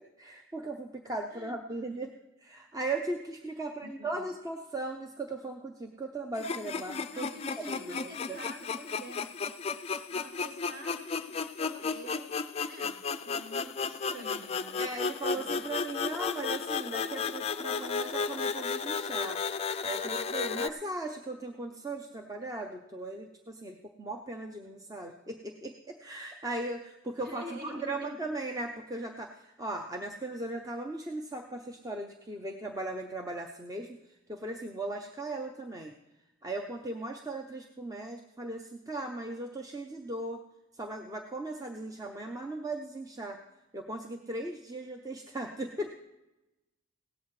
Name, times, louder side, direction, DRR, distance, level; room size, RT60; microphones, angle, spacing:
voice 1, 0.2-2.1 2.4-7.3 7.7-8.4 14.8-19.4 19.8-34.0 34.3-35.9 36.4-40.4 40.7-43.4 43.7-45.9, right 2 dB, 15° right, 3 dB, 0.6 m, -38 dB
voice 2, 3.6-4.3 7.1-9.3 10.1-12.3 12.6-14.8 15.3-15.6 27.2-28.2, equal, 45° right, 2 dB, 1.6 m, -47 dB
sound 1, 6.3-20.7, left 5 dB, 30° left, 0.3 m, -34 dB
17.0 x 13.0 x 3.2 m, 0.97 s
head